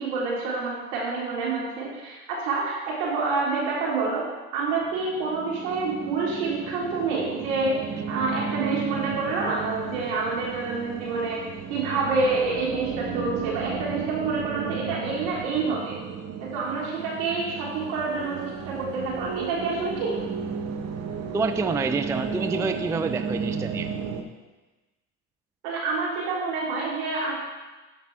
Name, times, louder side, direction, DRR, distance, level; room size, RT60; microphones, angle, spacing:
voice 1, 0.0-11.4 11.7-15.9 16.4-20.2 25.6-27.3, right 3 dB, 70° right, -4 dB, 3.7 m, -28 dB
sound 1, 4.8-24.2, right 6 dB, 40° right, 1.2 m, -34 dB
voice 2, 21.3-23.9, right 4 dB, 10° right, 9 dB, 0.4 m, -27 dB
12.0 x 5.3 x 4.8 m, 1.2 s
hypercardioid pair, 80°, 38 cm